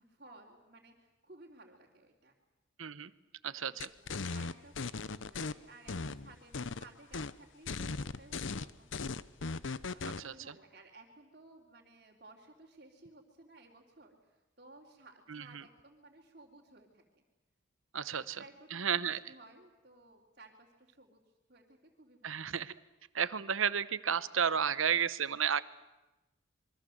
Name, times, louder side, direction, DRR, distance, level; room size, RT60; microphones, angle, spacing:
voice 1, 0.0-2.3 3.7-9.5 9.8-17.2 18.0-21.2 21.5-22.5, right 2 dB, 45° right, -4 dB, 3.2 m, -58 dB
voice 2, 2.8-3.1 3.4-3.9 10.2-10.3 15.3-15.6 17.9-18.4 18.7-19.2 22.2-22.7 23.1-25.6, right 7 dB, 85° right, 16 dB, 1.0 m, -32 dB
sound 1, 3.8-5.5 5.9-6.8 7.1-7.3 7.7-10.2, left 4 dB, 75° left, 0.8 m, -38 dB
26.5 x 23.5 x 7.9 m, 1.0 s
head